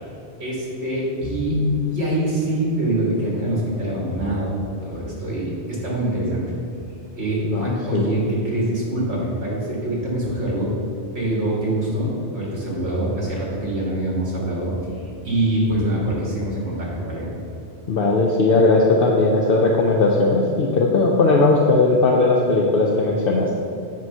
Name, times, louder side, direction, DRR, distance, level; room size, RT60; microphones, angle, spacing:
voice 1, 0.4-1.6 1.9-6.4 7.1-10.7 11.1-14.8 15.0-17.3, right 1 dB, 70° right, -4 dB, 1.9 m, -24 dB
voice 2, 7.4-8.2 17.9-23.6, left 3 dB, 60° left, -1 dB, 0.7 m, -18 dB
7.4 x 3.0 x 5.4 m, 2.6 s
omnidirectional pair, 1.2 m